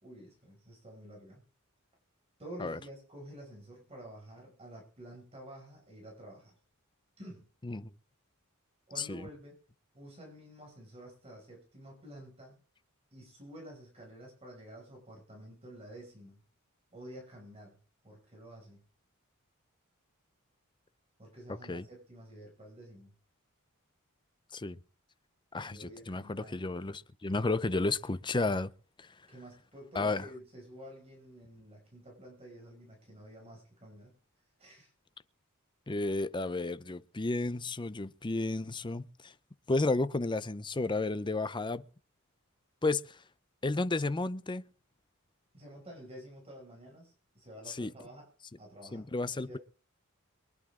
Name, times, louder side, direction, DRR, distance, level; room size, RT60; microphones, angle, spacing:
voice 1, 0.0-1.4 2.4-6.6 7.2-7.5 8.9-9.6 9.9-12.6 13.1-16.4 16.9-17.8 18.0-18.9 21.2-23.1 25.6-26.6 29.3-34.1 34.6-34.9 45.5-48.3 48.6-49.1 49.5-49.6, right 1 dB, 30° right, 6.0 m, -50 dB
voice 2, 9.0-9.3 21.7-21.9 24.5-24.8 25.5-28.7 29.0-29.1 30.0-30.3 35.9-39.3 39.7-41.8 42.8-43.2 43.6-44.6 47.7-47.9 48.9-49.6, left 2 dB, 20° left, 0.6 m, -32 dB
23.0 x 11.0 x 3.7 m
head